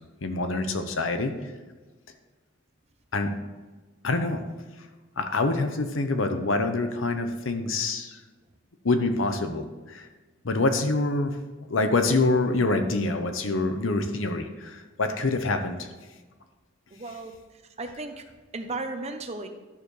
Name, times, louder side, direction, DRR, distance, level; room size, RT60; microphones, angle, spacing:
voice 1, 0.2-1.3 3.1-3.3 4.0-4.4 5.2-8.2 8.8-10.1 10.4-11.3 11.7-15.9, left 2 dB, 85° left, 7 dB, 0.9 m, -26 dB
voice 2, 16.9-18.2 18.5-19.5, right 3 dB, 35° right, 6 dB, 0.8 m, -35 dB
11.5 x 6.8 x 3.3 m, 1.3 s
head